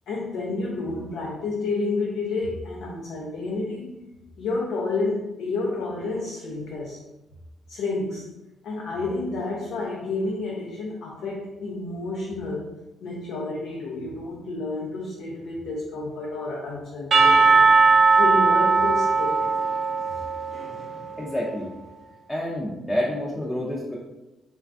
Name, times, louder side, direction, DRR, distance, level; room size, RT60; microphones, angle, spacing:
voice 1, 0.1-3.9 4.4-7.0 7.7-8.3 8.6-12.7 13.0-17.7 18.1-19.5, left 3 dB, 80° left, -3 dB, 0.4 m, -30 dB
Percussion / Church bell, 17.1-21.1, right 4 dB, 45° right, 0.5 m, -19 dB
voice 2, 20.9-21.7 22.3-23.9, left 1 dB, 10° left, -4 dB, 0.5 m, -28 dB
3.1 x 2.2 x 2.5 m, 1.0 s
cardioid pair, 90°, 0 cm